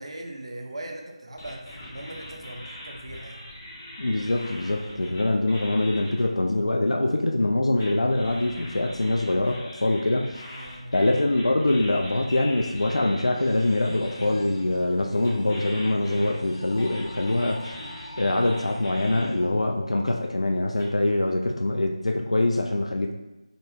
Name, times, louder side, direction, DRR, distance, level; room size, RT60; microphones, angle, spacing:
voice 1, 0.0-3.5 5.0-5.3 10.5-10.9 17.3-17.6, right 1 dB, 55° right, 2 dB, 0.6 m, -40 dB
sound 1, 1.4-6.3 7.8-14.2 15.2-19.2 20.8-20.9, left 1 dB, 20° left, 0.6 m, -42 dB
voice 2, 4.0-10.3 10.9-17.7 18.2-23.1, left 2 dB, 70° left, 2 dB, 0.3 m, -24 dB
sound 2, 13.3-20.3, left 1 dB, 50° left, 1.2 m, -42 dB
3.8 x 2.1 x 3.6 m, 1.1 s
figure-of-eight pair, 165°, 3 cm